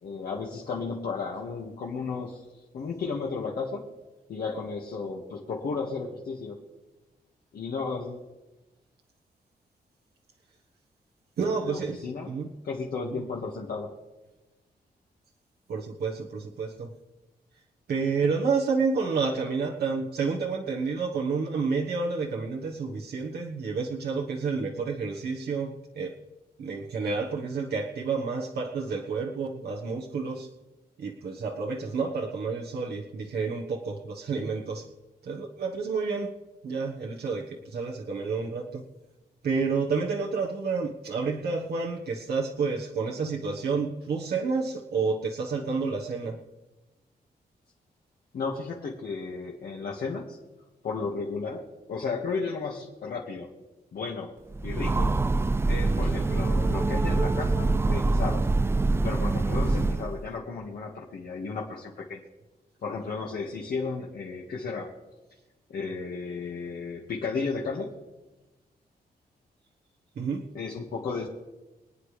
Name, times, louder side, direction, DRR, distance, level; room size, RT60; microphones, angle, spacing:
voice 1, 0.0-3.9 4.3-6.6 7.5-8.3 11.4-12.3 12.6-13.9 48.3-50.4 50.8-51.6 51.9-53.5 53.9-54.3 54.6-55.1 55.7-58.5 58.8-62.2 62.8-64.9 65.7-67.9 70.5-71.3, left 4 dB, 65° left, -2 dB, 1.8 m, -34 dB
voice 2, 11.4-12.5 13.0-13.2 15.7-16.9 17.9-26.1 26.6-30.5 31.0-34.9 35.2-36.3 36.6-38.8 39.4-46.4 70.1-70.4, right 4 dB, 75° right, -1 dB, 1.4 m, -30 dB
Train, 54.5-60.2, right 3 dB, 15° right, 0.4 m, -25 dB
25.5 x 9.6 x 3.3 m, 1.1 s
wide cardioid pair, 165°, 17 cm